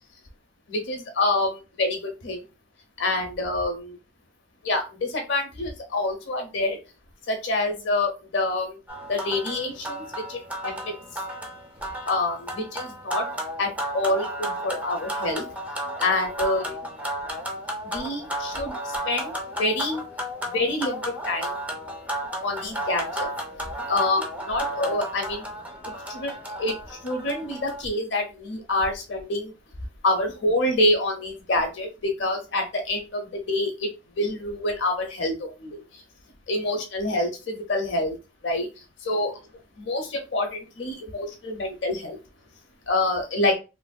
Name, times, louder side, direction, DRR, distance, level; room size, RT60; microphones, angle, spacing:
voice 1, 0.7-2.4 3.0-4.0 4.6-6.8 7.3-8.8 9.1-10.0 10.3-10.9 12.1-13.3 13.6-15.4 16.0-16.8 17.8-20.0 20.5-21.5 22.4-23.3 23.9-25.4 26.1-29.5 30.0-33.9 34.2-35.8 36.5-38.1 38.4-38.7 39.0-39.3 39.8-42.2 42.9-43.5, left 2 dB, 75° left, 4 dB, 0.7 m, -27 dB
sound 1, 8.9-27.8, right 1 dB, 10° right, 0.5 m, -33 dB
3.2 x 2.6 x 2.2 m, 0.29 s
head